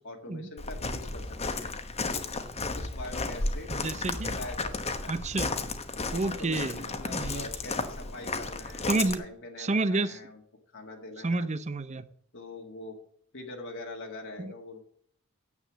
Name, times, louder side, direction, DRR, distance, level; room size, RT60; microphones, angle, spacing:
voice 1, 0.0-1.7 2.1-2.2 2.7-3.7 4.3-5.1 6.2-10.4 10.7-11.5 12.3-13.0 13.3-14.8, left 2 dB, 55° left, 1.8 m, -43 dB
Walk footsteps, 0.6-9.1, left 3 dB, 30° left, 1.1 m, -33 dB
voice 2, 3.7-4.4 5.1-5.6 6.1-7.5 8.9-9.3 9.6-10.2 11.2-12.1 14.4-14.5, right 2 dB, 30° right, 0.6 m, -30 dB
9.7 x 7.9 x 7.3 m
head